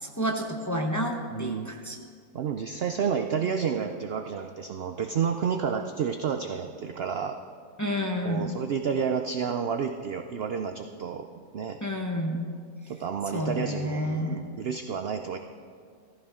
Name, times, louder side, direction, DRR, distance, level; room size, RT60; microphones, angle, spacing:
voice 1, 0.0-2.0 7.8-8.6 11.8-12.5 13.3-14.4, equal, 15° left, 1 dB, 0.7 m, -30 dB
voice 2, 1.3-1.7 2.3-7.4 8.2-11.3 11.5-11.8 12.9-15.4, right 6 dB, 70° right, 6 dB, 0.5 m, -30 dB
14.5 x 14.5 x 3.7 m, 2.1 s
omnidirectional pair, 1.7 m